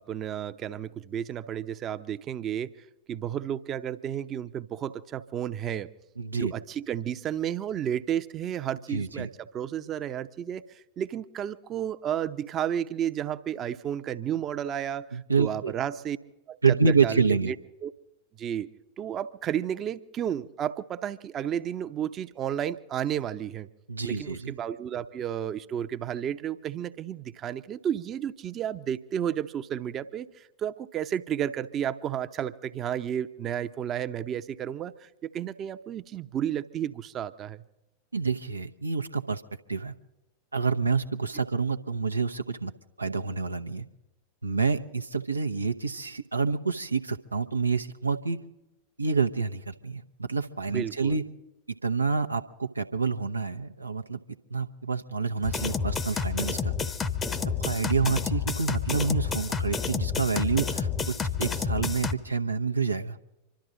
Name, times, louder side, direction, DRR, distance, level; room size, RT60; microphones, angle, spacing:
voice 1, 0.0-2.7 3.1-5.9 6.3-9.3 9.5-16.2 16.5-17.6 17.8-17.9 18.4-18.7 19.0-23.7 24.0-37.6 50.7-51.2, right 9 dB, 30° right, 11 dB, 0.8 m, -32 dB
voice 2, 6.2-6.5 8.9-9.3 15.1-15.7 16.6-17.5 23.9-24.5 38.1-39.4 39.7-39.9 40.5-42.7 43.0-43.9 44.4-48.4 49.0-51.2 51.8-54.2 54.5-56.7 57.6-63.2, right 4 dB, 80° right, 7 dB, 0.8 m, -28 dB
sound 1, 55.4-62.1, left 5 dB, 20° left, 0.9 m, -29 dB
26.0 x 13.0 x 3.9 m, 0.96 s
figure-of-eight pair, 90°, 0 cm